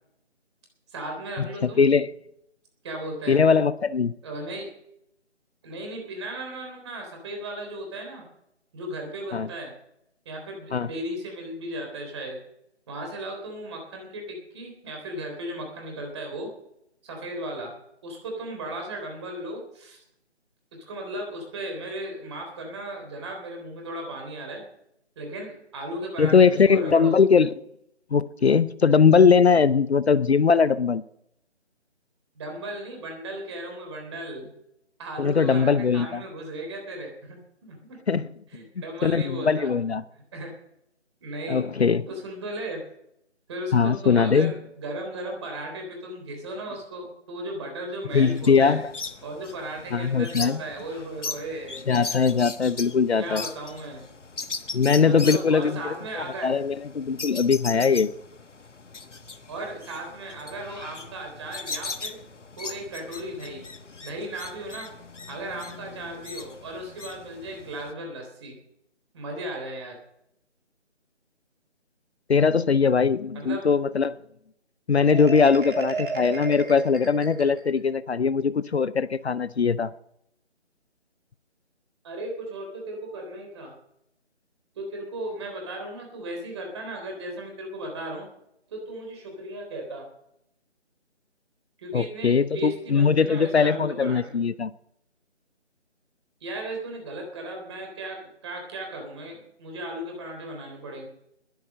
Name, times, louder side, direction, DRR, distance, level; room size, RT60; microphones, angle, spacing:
voice 1, 0.9-1.9 2.8-3.4 4.2-4.7 5.6-8.3 8.7-9.7 10.3-12.4 12.9-16.5 17.0-17.7 18.0-20.0 20.7-24.6 25.2-27.2 32.4-34.5 35.0-38.0 38.5-39.7 40.3-40.5 41.2-41.6 42.1-42.8 43.5-48.8 49.2-51.8 52.1-52.3 53.2-54.0 55.1-56.6 59.5-62.2 62.6-63.6 64.0-64.9 65.3-68.6 69.1-70.0 73.3-73.7 82.0-83.7 84.8-88.3 88.7-90.1 91.8-94.3 96.4-98.2 98.4-101.1, right 1 dB, 25° right, 3.7 m, -36 dB
voice 2, 1.6-2.1 3.3-4.1 9.3-9.5 10.7-10.9 26.2-27.5 28.1-31.0 35.2-36.2 38.1-38.3 39.0-40.0 41.5-42.1 43.7-44.5 48.1-48.9 49.9-50.6 51.9-53.4 54.7-55.8 56.2-58.1 72.3-74.2 74.9-79.9 91.9-94.7, left 5 dB, 65° left, 0.7 m, -20 dB
sound 1, 48.1-67.9, left 4 dB, 80° left, 1.3 m, -39 dB
Marimba xylophone, 75.1-77.9, right 3 dB, 45° right, 3.2 m, -33 dB
21.0 x 8.4 x 6.5 m
figure-of-eight pair, 160°, 36 cm